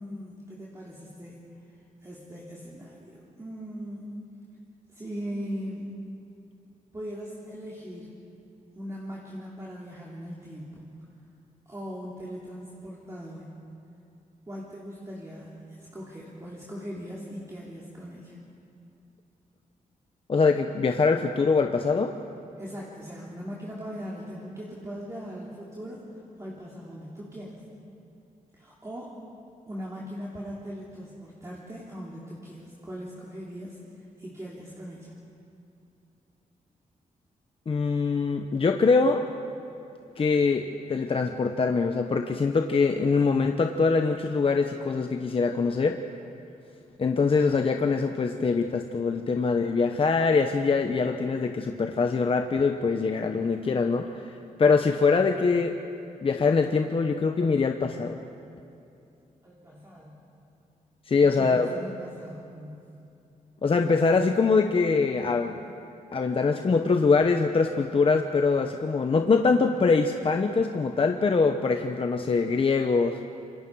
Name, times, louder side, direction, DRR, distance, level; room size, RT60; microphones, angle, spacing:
voice 1, 0.0-1.4 2.0-4.1 4.9-5.9 6.9-8.2 8.7-10.8 11.7-13.5 14.5-18.4 22.6-27.6 28.5-29.2 29.7-35.2 59.4-60.2 61.3-63.0, equal, 20° right, -5 dB, 3.0 m, -40 dB
voice 2, 20.3-22.1 37.7-39.3 40.2-46.0 47.0-54.3 54.6-55.7 56.2-58.2 61.1-61.7 63.6-65.6 66.1-73.2, left 4 dB, 40° left, 5 dB, 0.9 m, -23 dB
27.0 x 23.0 x 4.8 m, 2.6 s
cardioid pair, 100°, 14 cm